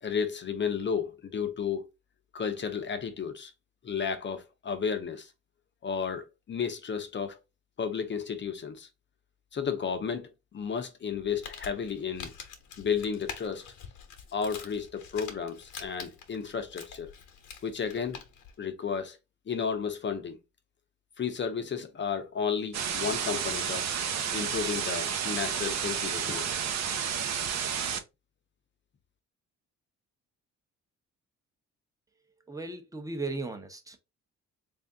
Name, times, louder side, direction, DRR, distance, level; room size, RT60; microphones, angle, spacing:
voice 1, 0.0-1.9 2.3-3.5 3.8-5.3 5.8-7.4 7.8-8.9 9.5-12.3 12.8-13.7 14.3-17.1 17.6-18.2 18.6-19.2 19.5-20.4 21.2-23.9 24.3-26.5, left 6 dB, 40° left, 0.7 m, -33 dB
Crumpling crinkling, 11.1-18.5, left 7 dB, 75° left, 1.0 m, -46 dB
sound 1, 22.7-28.0, right 7 dB, 60° right, 0.7 m, -31 dB
voice 2, 32.5-34.0, right 3 dB, 10° right, 0.9 m, -36 dB
3.4 x 2.7 x 3.5 m
cardioid pair, 90°, 30 cm